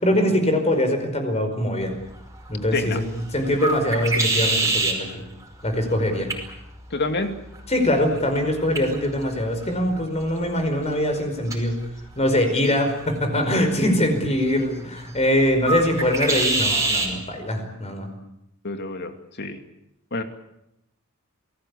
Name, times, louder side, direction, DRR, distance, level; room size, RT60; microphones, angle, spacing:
voice 1, 0.0-1.9 2.5-5.2 5.6-6.3 7.7-11.7 12.2-18.1, left 1 dB, 30° left, 6 dB, 5.1 m, -23 dB
sound 1, 1.8-17.1, right 3 dB, 15° right, 5.1 m, -30 dB
voice 2, 6.9-7.4 18.6-19.1 19.4-19.6 20.1-20.2, left 2 dB, 50° left, 7 dB, 2.6 m, -27 dB
28.0 x 18.5 x 8.4 m, 0.84 s
head